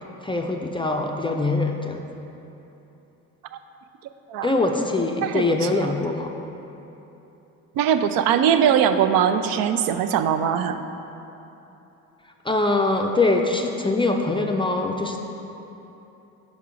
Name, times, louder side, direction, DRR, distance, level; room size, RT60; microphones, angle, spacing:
voice 1, 0.2-2.0 4.4-6.3 12.4-15.2, left 2 dB, 15° left, 2 dB, 0.3 m, -23 dB
voice 2, 7.8-10.8, right 8 dB, 75° right, 9 dB, 0.5 m, -21 dB
5.4 x 4.8 x 4.9 m, 3.0 s
cardioid pair, 85°, 35 cm